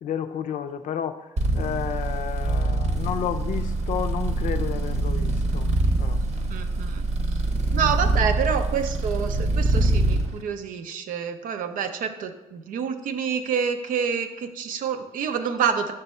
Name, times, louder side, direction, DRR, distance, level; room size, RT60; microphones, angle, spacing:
voice 1, 0.0-1.3 1.5-6.2 7.7-8.0, left 9 dB, 70° left, 8 dB, 0.4 m, -31 dB
sound 1, 1.4-10.3, right 2 dB, 60° right, 0.8 m, -24 dB
voice 2, 6.5-7.1 7.7-15.9, right 7 dB, 80° right, 8 dB, 0.5 m, -27 dB
5.9 x 3.3 x 5.4 m, 1.0 s
cardioid pair, 65°, 14 cm